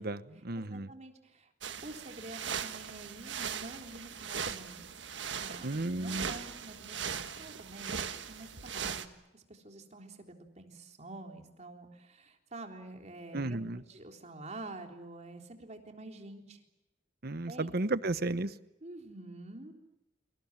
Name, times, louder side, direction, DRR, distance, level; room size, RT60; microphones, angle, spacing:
voice 1, 0.0-0.9 5.6-6.3 13.3-13.8 17.2-18.5, right 2 dB, 55° right, 14 dB, 1.1 m, -33 dB
voice 2, 0.5-1.5 1.8-4.9 5.4-9.1 9.3-16.6 17.5-17.7 18.8-19.7, right 2 dB, 40° right, 3 dB, 3.7 m, -48 dB
sound 1, 1.6-9.0, right 7 dB, 75° right, 1.6 m, -39 dB
29.0 x 25.5 x 7.5 m, 0.95 s
head